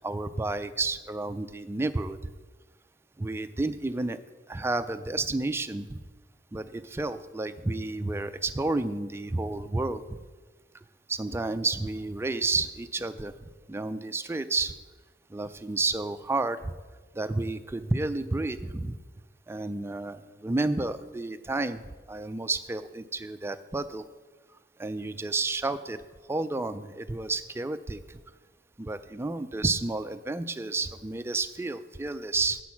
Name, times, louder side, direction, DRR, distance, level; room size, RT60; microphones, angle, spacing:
voice 1, 0.0-2.3 3.2-4.2 4.5-6.0 6.5-10.0 11.1-13.3 13.7-14.7 15.3-16.7 17.1-19.0 19.5-21.8 22.1-24.0 24.8-26.0 26.3-28.2 28.8-32.6, right 3 dB, 15° right, 10 dB, 0.3 m, -31 dB
8.4 x 6.2 x 5.8 m, 1.3 s
head